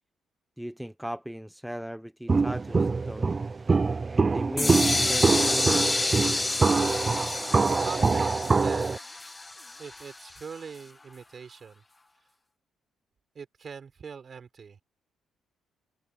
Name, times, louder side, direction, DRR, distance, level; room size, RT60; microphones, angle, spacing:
voice 1, 0.6-3.4 4.3-5.9, equal, 5° right, 0.8 m, -37 dB
Walk footsteps, 2.3-9.0, right 4 dB, 30° right, 0.5 m, -24 dB
sound 1, 4.6-10.4, left 2 dB, 20° left, 1.5 m, -29 dB
voice 2, 7.8-9.1 9.8-11.8 13.3-14.8, right 6 dB, 45° right, 4.9 m, -42 dB
cardioid pair, 90°, 0 cm